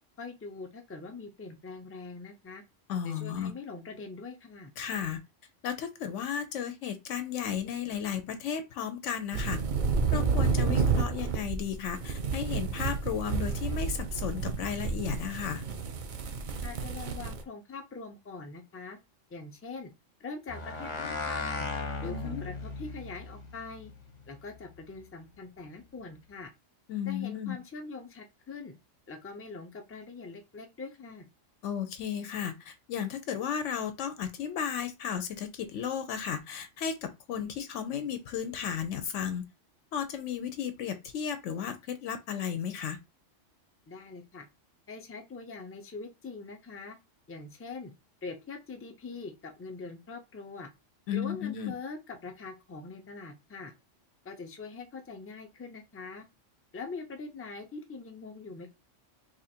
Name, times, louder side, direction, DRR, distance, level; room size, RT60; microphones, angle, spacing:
voice 1, 0.2-2.6 3.0-4.7 16.6-19.0 19.3-19.9 20.2-21.7 22.0-23.9 24.3-26.5 27.1-28.7 29.1-31.3 43.9-44.5 44.9-47.0 47.3-47.9 48.2-50.7 51.1-53.7 54.2-56.2 56.7-58.7, left 4 dB, 20° left, 0.3 m, -43 dB
voice 2, 2.9-3.5 4.8-5.2 5.6-9.6 10.1-15.6 22.0-22.4 26.9-27.6 31.6-39.4 39.9-43.0 51.1-51.7, left 8 dB, 85° left, 0.9 m, -34 dB
sound 1, 9.3-17.4, right 5 dB, 50° right, 0.6 m, -30 dB
sound 2, 20.5-25.2, left 3 dB, 40° left, 0.8 m, -38 dB
2.9 x 2.5 x 4.2 m
omnidirectional pair, 1.2 m